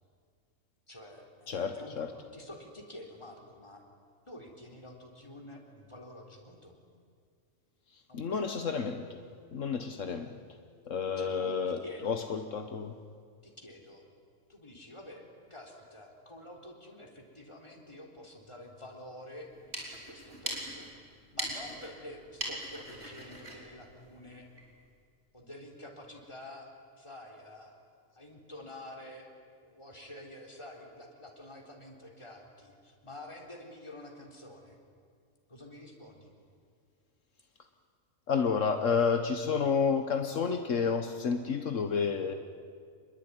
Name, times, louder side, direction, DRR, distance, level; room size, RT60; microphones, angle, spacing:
voice 1, 0.9-2.0 2.3-3.9 4.3-6.8 8.1-8.7 11.2-12.2 13.4-14.1 14.5-19.5 19.9-24.5 25.3-29.3 29.6-34.8 35.5-36.3, left 1 dB, 20° left, 1 dB, 3.9 m, -48 dB
voice 2, 1.5-2.1 8.1-9.2 9.5-10.4 10.9-13.0 38.3-42.3, left 5 dB, 75° left, 7 dB, 1.5 m, -30 dB
sound 1, 19.4-24.7, right 1 dB, 55° right, 5.0 m, -41 dB
27.0 x 21.5 x 9.7 m, 2.2 s
omnidirectional pair, 1.3 m